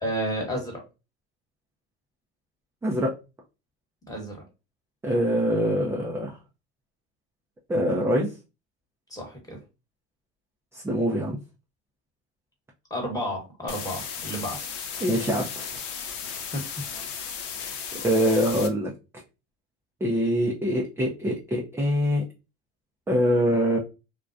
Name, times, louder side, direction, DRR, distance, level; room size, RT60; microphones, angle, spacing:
voice 1, 0.0-0.8 4.1-4.4 9.1-9.6 12.9-14.6 16.5-16.6 17.9-18.0, equal, 10° left, 0 dB, 1.2 m, -31 dB
voice 2, 2.8-3.2 5.0-6.4 7.7-8.3 10.7-11.4 15.0-15.8 18.0-19.2 20.0-22.2 23.1-23.8, equal, 5° right, -2 dB, 0.4 m, -24 dB
sound 1, 13.7-18.7, left 7 dB, 65° left, 0.7 m, -35 dB
2.3 x 2.2 x 2.4 m, 0.28 s
hypercardioid pair, 80°, 37 cm